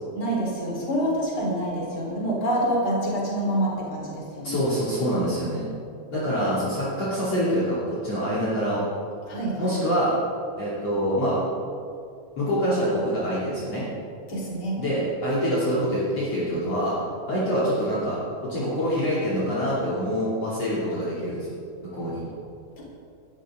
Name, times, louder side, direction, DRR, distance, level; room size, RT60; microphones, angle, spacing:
voice 1, 0.1-4.5 9.3-9.8 14.3-14.8, right 1 dB, 30° left, -4 dB, 4.3 m, -27 dB
voice 2, 4.4-5.7 6.1-8.8 9.6-10.1 10.6-11.4 12.4-13.8 14.8-17.0 17.3-18.2 18.5-21.5 21.9-22.2, equal, 45° left, -9 dB, 3.8 m, -25 dB
20.0 x 14.0 x 3.8 m, 2.5 s
omnidirectional pair, 4.0 m